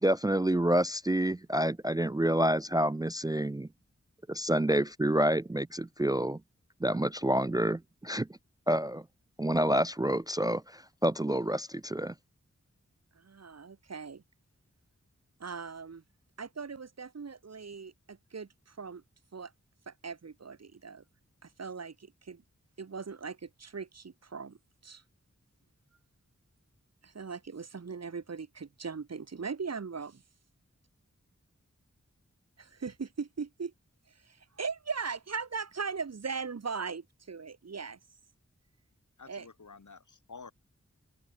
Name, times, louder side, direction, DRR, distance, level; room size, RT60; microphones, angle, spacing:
voice 1, 0.0-3.7 4.3-6.4 6.8-8.3 8.7-9.1 9.4-12.1, right 1 dB, 15° right, 0.3 m, -28 dB
voice 2, 13.1-14.2 15.4-16.0 16.4-19.0 19.3-19.5 19.9-21.0 21.4-22.4 22.8-25.0 27.0-30.1 32.6-33.7 34.1-38.0 39.3-39.4, right 5 dB, 60° right, 1.1 m, -39 dB
voice 3, 39.2-40.5, left 4 dB, 85° left, 3.9 m, -50 dB
wide cardioid pair, 80°, 29 cm